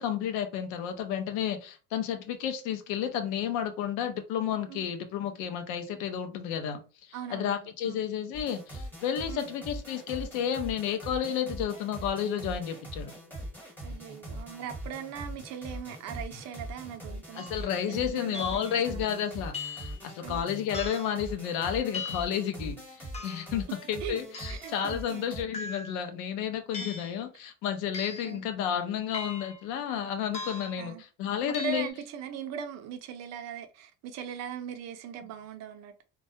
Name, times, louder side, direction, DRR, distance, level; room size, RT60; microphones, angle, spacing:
voice 1, 0.0-13.1 17.3-31.9, left 9 dB, 80° left, 0.6 m, -32 dB
voice 2, 7.1-8.0 9.3-9.4 13.8-19.2 20.2-20.4 24.0-24.2 24.5-25.3 26.8-26.9 28.2-28.4 30.8-31.0 31.6-36.0, right 8 dB, 60° right, 0.5 m, -40 dB
sound 1, 8.3-25.4, right 1 dB, 5° left, 1.2 m, -42 dB
sound 2, 17.4-17.6 18.3-18.7 19.5-20.0 20.7-21.2 21.9-22.4 23.1-23.5 24.3-24.7 25.5-26.1 26.7-27.2 27.9-28.4 29.1-29.6 30.3-30.8 31.5-31.9, left 4 dB, 20° left, 0.5 m, -39 dB
2.2 x 2.0 x 2.7 m
cardioid pair, 125°, 30 cm